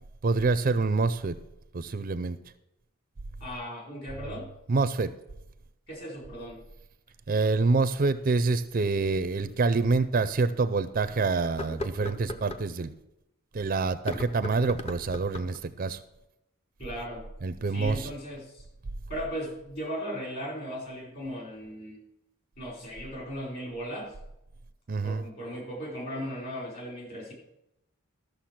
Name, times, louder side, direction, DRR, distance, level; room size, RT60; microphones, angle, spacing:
voice 1, 0.2-1.4 1.7-2.4 4.7-5.1 7.3-12.9 13.5-16.0 17.4-18.1 24.9-25.2, right 3 dB, 40° right, 14 dB, 0.4 m, -26 dB
voice 2, 3.4-4.5 5.9-6.6 16.8-17.3 17.6-18.6 19.1-22.0 22.6-24.1 25.0-27.3, equal, 45° left, -2 dB, 4.4 m, -37 dB
sound 1, 9.5-9.6 10.2-10.3 11.4-12.7 13.9-15.6, left 1 dB, 30° left, 0.7 m, -38 dB
13.0 x 6.7 x 5.9 m, 0.89 s
head